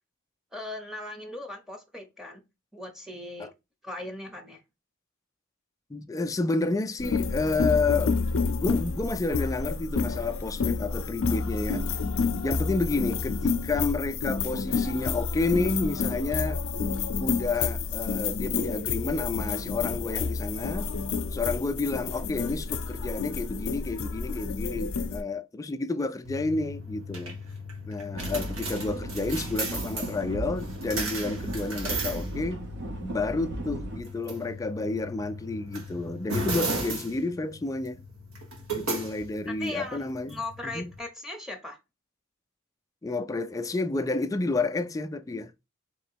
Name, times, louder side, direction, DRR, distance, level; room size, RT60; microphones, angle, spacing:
voice 1, 0.5-2.4 2.7-3.5 3.8-4.6 39.5-41.8, left 2 dB, ahead, 0.8 m, -38 dB
voice 2, 5.9-8.2 8.5-11.9 12.3-20.9 21.3-27.4 27.9-32.7 33.0-38.0 38.7-40.4 40.7-40.9 43.0-45.5, left 3 dB, 15° left, 0.3 m, -30 dB
sound 1, 7.0-25.2, left 4 dB, 70° left, 0.6 m, -29 dB
sound 2, 26.3-41.0, right 1 dB, 75° right, 1.6 m, -36 dB
sound 3, 28.1-34.0, right 1 dB, 60° right, 0.9 m, -36 dB
3.7 x 2.9 x 4.6 m
head